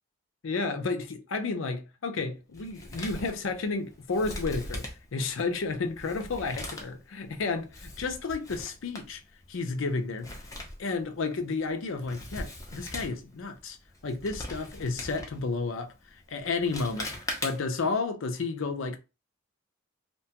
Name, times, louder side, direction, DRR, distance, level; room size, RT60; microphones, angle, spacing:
voice 1, 0.4-9.2 9.5-10.3 10.8-13.8 14.0-17.1 17.4-19.0, left 4 dB, 75° left, 0.5 m, -32 dB
Male speech man speaking, 2.5-17.9, left 1 dB, 15° left, 0.5 m, -42 dB
2.8 x 2.2 x 2.8 m
head